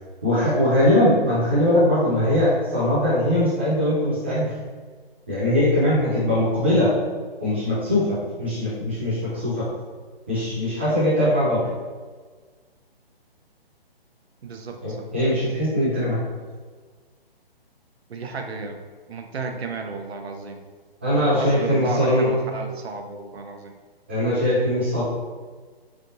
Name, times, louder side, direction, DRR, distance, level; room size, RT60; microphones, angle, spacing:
voice 1, 0.2-4.5 5.3-6.9 7.4-9.6 10.3-11.6 14.8-16.2 21.0-22.3 24.1-25.0, left 1 dB, 10° right, -11 dB, 0.4 m, -21 dB
voice 2, 14.4-15.1 18.1-18.8 19.1-20.6 21.2-23.7, right 4 dB, 90° right, 4 dB, 0.6 m, -33 dB
3.4 x 2.6 x 2.6 m, 1.4 s
hypercardioid pair, 160°, 31 cm